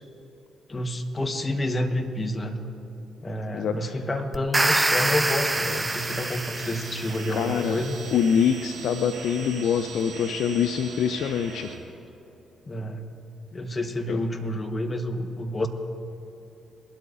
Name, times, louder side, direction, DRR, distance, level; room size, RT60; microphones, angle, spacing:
voice 1, 0.7-2.6 3.2-8.0 12.7-13.1 13.5-15.7, left 1 dB, 30° left, 5 dB, 1.4 m, -29 dB
voice 2, 3.5-4.0 7.3-7.8 8.1-11.7 14.1-14.2, left 7 dB, 65° left, 9 dB, 0.5 m, -25 dB
sound 1, 4.3-7.5, right 2 dB, 15° right, 0.4 m, -26 dB
sound 2, 4.9-11.8, right 5 dB, 65° right, 1.5 m, -40 dB
21.5 x 12.5 x 2.7 m, 2.9 s
hypercardioid pair, 45°, 0 cm